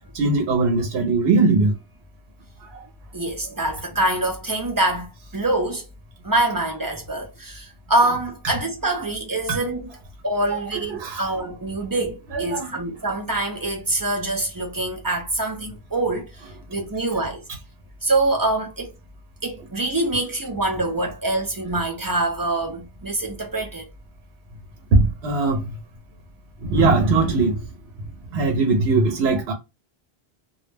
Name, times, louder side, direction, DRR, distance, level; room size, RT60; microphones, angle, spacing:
voice 1, 0.1-1.7 2.6-2.8 9.5-9.6 10.9-11.2 12.3-12.7 24.9-25.7 26.6-27.6 28.3-29.5, right 3 dB, 80° right, 0.8 m, -20 dB
voice 2, 3.1-5.9 6.2-9.9 10.2-16.3 16.7-17.4 18.0-18.9 19.4-23.9, right 2 dB, 30° right, 0.4 m, -25 dB
2.2 x 2.0 x 3.1 m
omnidirectional pair, 1.0 m